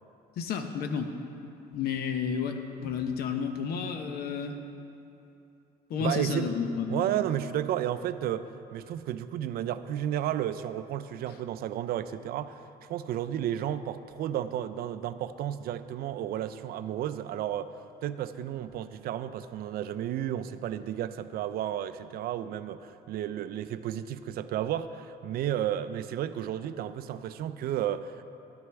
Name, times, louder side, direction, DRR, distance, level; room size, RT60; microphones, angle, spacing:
voice 1, 0.4-1.1 1.7-4.5 5.9-7.1, left 6 dB, 70° left, 6 dB, 0.8 m, -31 dB
voice 2, 6.0-6.5 6.9-8.5 8.7-12.6 12.9-17.7 18.0-28.2, right 11 dB, 65° right, 12 dB, 0.4 m, -32 dB
12.0 x 9.5 x 3.4 m, 2.8 s
cardioid pair, 110°, 17 cm